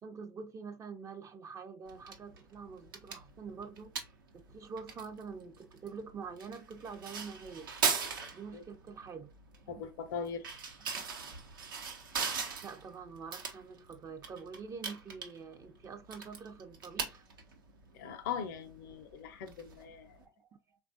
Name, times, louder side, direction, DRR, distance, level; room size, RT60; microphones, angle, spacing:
voice 1, 0.0-3.9 4.3-7.7 8.3-9.3 9.7-9.8 10.9-11.0 12.6-17.3 20.2-20.8, right 5 dB, 30° right, 0.4 m, -46 dB
sound 1, 1.9-20.2, right 5 dB, 85° right, 0.7 m, -41 dB
voice 2, 9.7-10.5 17.9-20.2, left 7 dB, 70° left, 0.5 m, -40 dB
3.4 x 2.2 x 2.5 m
hypercardioid pair, 90°, 11 cm